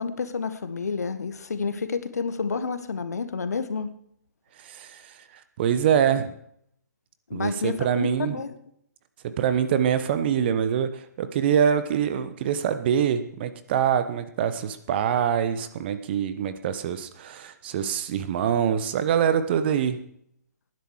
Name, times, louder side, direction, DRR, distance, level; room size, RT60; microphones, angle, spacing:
voice 1, 0.0-3.9 7.3-8.6, left 5 dB, 60° left, 11 dB, 1.6 m, -30 dB
voice 2, 4.6-6.3 7.3-8.4 9.2-20.0, right 8 dB, 35° right, 11 dB, 1.2 m, -25 dB
19.5 x 10.5 x 4.9 m, 0.72 s
figure-of-eight pair, 130°, 10 cm